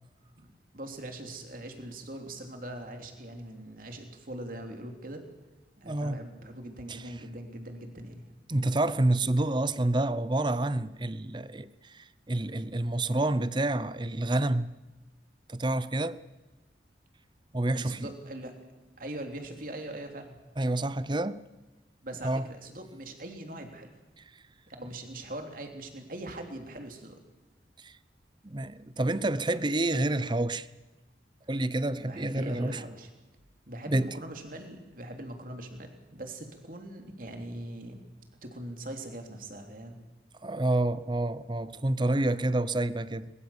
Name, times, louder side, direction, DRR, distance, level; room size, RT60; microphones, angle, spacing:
voice 1, 0.4-5.2 5.8-8.3 17.7-18.5 19.0-20.4 22.0-24.0 24.7-27.2 32.0-33.1 33.7-38.0 38.4-40.0 42.3-42.4, right 1 dB, 50° right, 3.2 m, -41 dB
voice 2, 5.8-6.2 6.9-7.0 8.5-14.7 15.5-16.2 17.5-18.1 20.6-21.4 22.2-22.5 27.8-27.9 28.4-30.7 31.5-32.8 33.9-34.2 40.4-43.3, right 2 dB, 25° right, 0.7 m, -28 dB
22.5 x 21.5 x 7.2 m
head